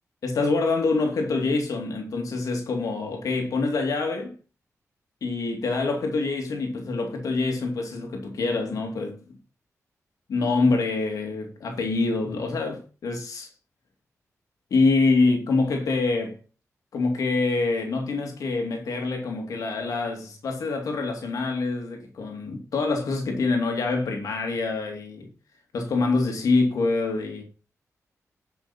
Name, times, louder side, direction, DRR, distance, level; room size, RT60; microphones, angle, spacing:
voice 1, 0.2-4.3 5.2-9.2 10.3-13.5 14.7-16.4 16.9-25.3 25.7-27.4, left 3 dB, 85° left, 2.6 m, -25 dB
10.5 x 6.3 x 4.4 m
wide cardioid pair, 120°, 6 cm